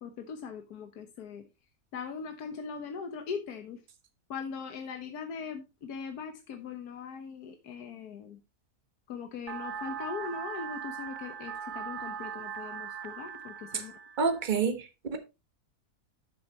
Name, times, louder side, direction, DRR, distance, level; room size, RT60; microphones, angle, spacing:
voice 1, 0.0-1.4 1.9-3.8 4.3-8.4 9.1-13.9, left 6 dB, 85° left, 1.6 m, -40 dB
sound 1, 9.5-14.5, right 8 dB, 60° right, 0.5 m, -40 dB
voice 2, 14.2-15.2, right 5 dB, 35° right, 1.4 m, -28 dB
12.0 x 6.8 x 2.9 m
omnidirectional pair, 1.6 m